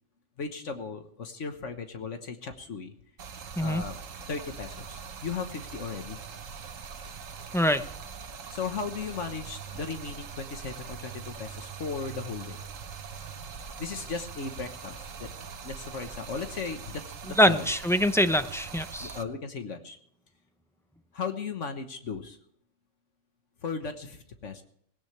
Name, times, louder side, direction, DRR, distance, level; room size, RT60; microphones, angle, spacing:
voice 1, 0.4-2.9 3.6-4.0 4.3-6.2 8.5-12.6 13.8-15.3 15.6-17.7 19.0-20.0 21.1-22.4 23.6-24.6, left 5 dB, 75° left, 6 dB, 1.5 m, -36 dB
Stream, 3.2-19.2, right 6 dB, 85° right, 1.5 m, -42 dB
voice 2, 17.4-19.1, equal, 5° left, 9 dB, 0.6 m, -24 dB
18.0 x 17.5 x 3.3 m, 0.67 s
omnidirectional pair, 1.3 m